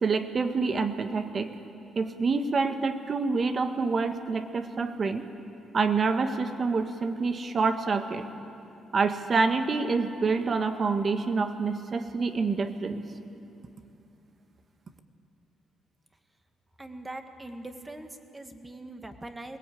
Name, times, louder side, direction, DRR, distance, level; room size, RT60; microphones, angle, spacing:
voice 1, 0.0-1.5 1.9-5.2 5.7-8.2 8.9-13.0, right 4 dB, 45° right, 8 dB, 1.4 m, -27 dB
voice 2, 16.8-19.6, right 2 dB, 15° right, 6 dB, 1.7 m, -42 dB
21.5 x 17.5 x 8.5 m, 2.8 s
cardioid pair, 90°, 0 cm